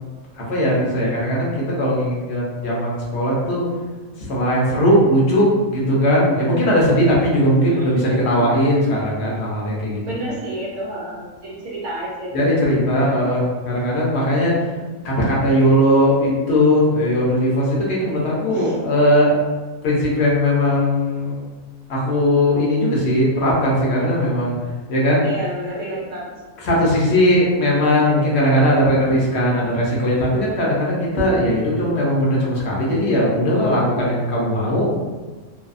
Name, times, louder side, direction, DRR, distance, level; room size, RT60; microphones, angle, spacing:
voice 1, 0.4-3.7 4.3-10.0 12.3-14.5 15.0-19.4 19.8-21.4 21.9-24.6 24.9-25.2 26.6-35.0, equal, 60° left, -5 dB, 0.8 m, -18 dB
voice 2, 7.6-8.2 10.0-13.4 14.4-14.8 18.5-18.8 25.2-26.9 28.0-28.4, right 1 dB, 60° right, -5 dB, 0.9 m, -32 dB
2.6 x 2.2 x 2.4 m, 1.3 s
omnidirectional pair, 1.5 m